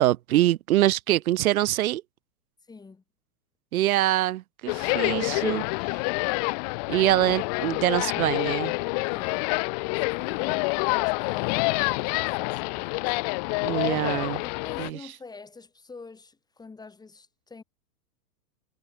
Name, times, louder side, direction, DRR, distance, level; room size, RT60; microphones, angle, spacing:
voice 1, 0.0-2.0 3.7-6.0 6.9-8.7 13.6-14.4 14.8-15.0, right 14 dB, 65° right, 1.7 m, -24 dB
voice 2, 2.7-3.0 9.1-13.2 14.4-17.6, left 4 dB, 10° left, 3.6 m, -47 dB
sound 1, 4.7-14.9, left 31 dB, 25° left, 0.6 m, -27 dB
hypercardioid pair, 150°, 46 cm